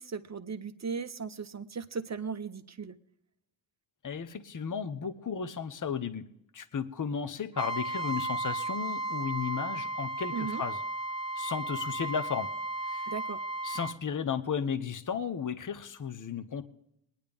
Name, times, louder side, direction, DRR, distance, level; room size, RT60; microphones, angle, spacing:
voice 1, 0.0-3.0 10.3-10.6 13.1-13.4, right 5 dB, 35° right, 10 dB, 0.7 m, -37 dB
voice 2, 4.0-6.3 6.5-10.8 11.4-12.5 12.8-13.1 13.6-16.6, left 7 dB, 40° left, 11 dB, 0.9 m, -34 dB
Trumpet, 7.5-14.0, right 2 dB, 15° right, 1.7 m, -34 dB
22.0 x 10.0 x 3.5 m, 0.79 s
wide cardioid pair, 95°, 46 cm